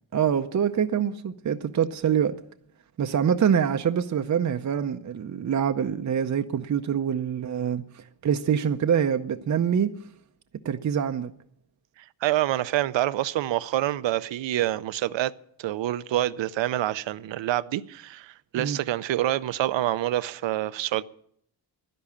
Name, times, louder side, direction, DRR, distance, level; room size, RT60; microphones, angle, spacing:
voice 1, 0.1-2.4 3.0-9.9 10.6-11.3 18.5-18.8, right 8 dB, 40° right, 0.6 m, -25 dB
voice 2, 12.2-15.3 15.6-21.0, right 13 dB, 80° right, 0.7 m, -27 dB
11.5 x 11.0 x 8.5 m
cardioid pair, 115°, 44 cm